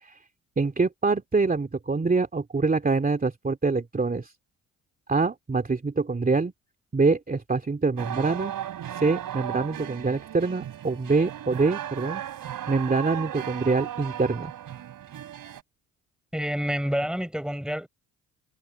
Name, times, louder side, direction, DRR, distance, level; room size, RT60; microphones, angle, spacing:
voice 1, 0.6-4.3 5.1-6.5 6.9-8.5 8.9-12.2 12.7-14.5, right 4 dB, 20° right, 2.8 m, -25 dB
sound 1, 8.0-15.6, right 11 dB, 55° right, 3.5 m, -36 dB
voice 2, 16.3-17.9, equal, ahead, 6.0 m, -28 dB
supercardioid pair, 65°, 38 cm